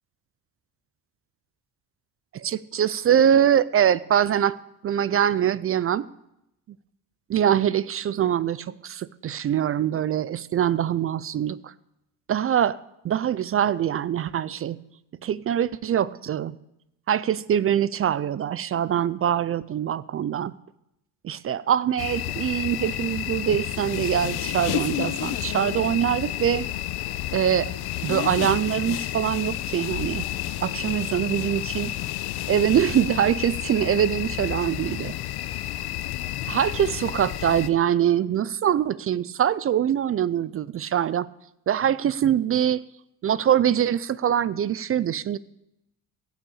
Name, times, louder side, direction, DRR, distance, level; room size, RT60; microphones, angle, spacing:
voice 1, 2.3-4.6 4.8-6.1 7.3-11.7 12.3-12.8 13.0-14.8 15.2-16.6 17.1-20.5 21.2-26.7 27.3-27.7 28.0-30.3 30.6-31.9 32.5-35.1 36.5-41.3 41.7-42.8 43.2-45.4, right 9 dB, 35° right, 19 dB, 0.4 m, -23 dB
sound 1, 22.0-37.7, left 14 dB, 65° left, 0.9 m, -30 dB
16.5 x 6.1 x 8.5 m, 0.84 s
cardioid pair, 100°, 41 cm